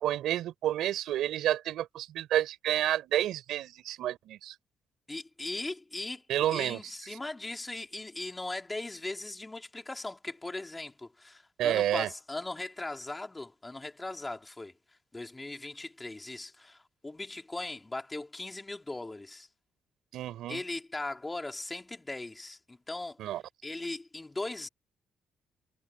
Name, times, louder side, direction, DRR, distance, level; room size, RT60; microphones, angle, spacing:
voice 1, 0.0-4.5 6.3-6.8 11.6-12.1 20.1-20.6 23.2-23.4, right 12 dB, 80° right, 4.4 m, -30 dB
voice 2, 5.1-14.7 15.1-19.5 20.5-23.2 23.6-24.7, left 2 dB, 15° left, 3.6 m, -39 dB
cardioid pair, 90°, 0 cm